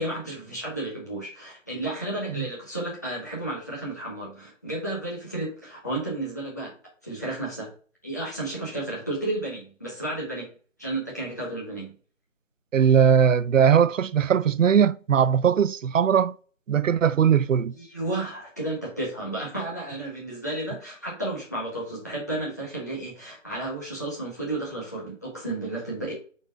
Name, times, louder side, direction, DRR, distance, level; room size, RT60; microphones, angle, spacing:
voice 1, 0.0-6.7 7.0-7.7 8.0-11.9 17.7-26.1, right 1 dB, 15° left, 1.2 m, -32 dB
voice 2, 12.7-16.3 16.7-17.8, right 8 dB, 80° right, 0.5 m, -20 dB
7.3 x 4.3 x 3.7 m
figure-of-eight pair, 175°, 38 cm